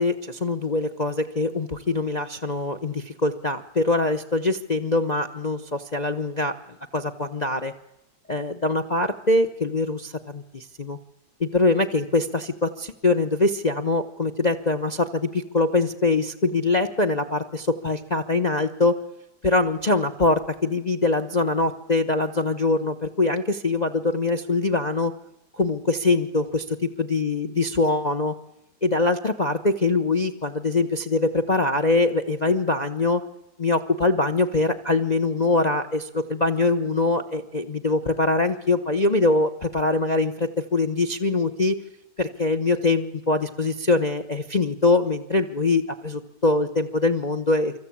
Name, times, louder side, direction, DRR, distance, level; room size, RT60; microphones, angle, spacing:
voice 1, 0.0-6.5 6.9-7.7 8.3-11.0 11.4-19.0 19.4-25.1 25.6-28.3 28.8-33.2 33.6-41.8 42.2-47.7, left 3 dB, 30° left, 10 dB, 0.8 m, -23 dB
25.5 x 24.0 x 8.6 m, 0.91 s
omnidirectional pair, 2.0 m